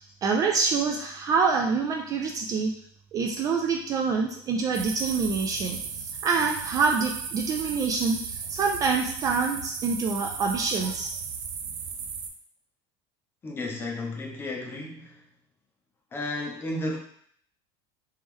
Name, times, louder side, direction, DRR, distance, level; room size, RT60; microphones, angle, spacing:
voice 1, 0.2-2.7 3.1-11.1, right 4 dB, 30° right, 2 dB, 0.4 m, -26 dB
sound 1, 4.7-12.3, right 6 dB, 85° right, 0.6 m, -36 dB
voice 2, 13.4-15.2 16.1-17.0, left 2 dB, 15° left, 0 dB, 0.7 m, -33 dB
3.2 x 3.0 x 3.5 m, 0.62 s
supercardioid pair, 150°, 13 cm